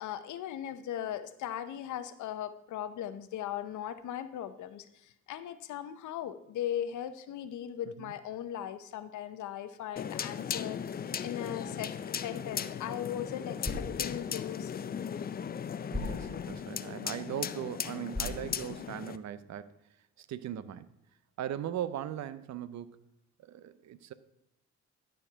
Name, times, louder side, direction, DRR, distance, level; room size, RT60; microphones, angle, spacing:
voice 1, 0.0-14.8, left 10 dB, 75° left, 11 dB, 0.8 m, -38 dB
sound 1, 10.0-19.2, left 8 dB, 30° left, 0.4 m, -37 dB
sound 2, 12.4-19.3, left 2 dB, 5° left, 1.2 m, -44 dB
voice 2, 15.9-19.8 20.2-20.9 21.4-23.0 23.4-24.1, right 10 dB, 65° right, 15 dB, 0.7 m, -39 dB
11.5 x 4.5 x 5.6 m, 0.82 s
cardioid pair, 90°, 30 cm